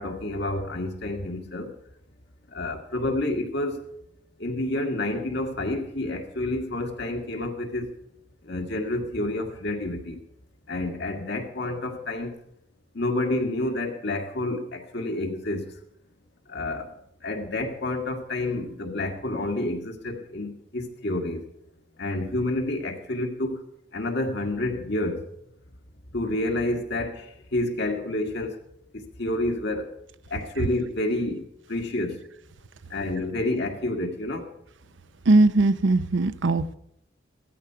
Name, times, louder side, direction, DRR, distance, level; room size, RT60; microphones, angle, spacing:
voice 1, 0.0-1.7 2.5-3.9 4.4-7.9 8.4-10.2 10.7-12.3 12.9-15.8 16.5-16.9 17.2-21.4 22.0-23.6 23.9-25.3 26.1-28.6 28.9-29.9 30.3-31.4 31.7-32.3 32.9-34.5, left 2 dB, 60° left, 1.9 m, -29 dB
voice 2, 35.3-36.7, right 2 dB, 70° right, 0.7 m, -20 dB
15.5 x 13.5 x 4.7 m
head